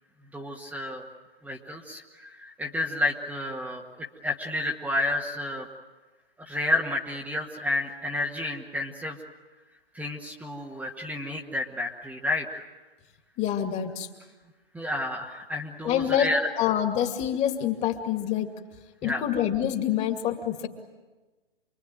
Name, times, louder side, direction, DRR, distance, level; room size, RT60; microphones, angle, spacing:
voice 1, 0.3-1.1 1.4-5.7 6.4-9.2 9.9-12.6 14.7-16.5 19.0-19.2, left 2 dB, 5° right, -1 dB, 1.6 m, -30 dB
voice 2, 13.4-14.1 15.8-18.5 19.0-20.7, left 10 dB, 20° left, 5 dB, 2.5 m, -26 dB
28.5 x 21.5 x 9.2 m, 1.2 s
hypercardioid pair, 130°, 30 cm